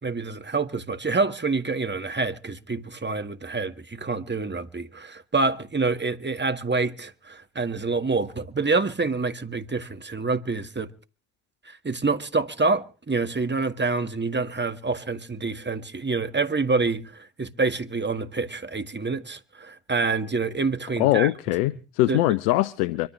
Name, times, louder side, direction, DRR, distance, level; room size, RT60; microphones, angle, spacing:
voice 1, 0.0-10.9 11.6-21.3 22.1-22.2, right 3 dB, 25° right, 1.8 m, -27 dB
voice 2, 21.0-23.1, left 17 dB, 85° left, 0.7 m, -22 dB
25.0 x 14.0 x 3.2 m
hypercardioid pair, 40°, 46 cm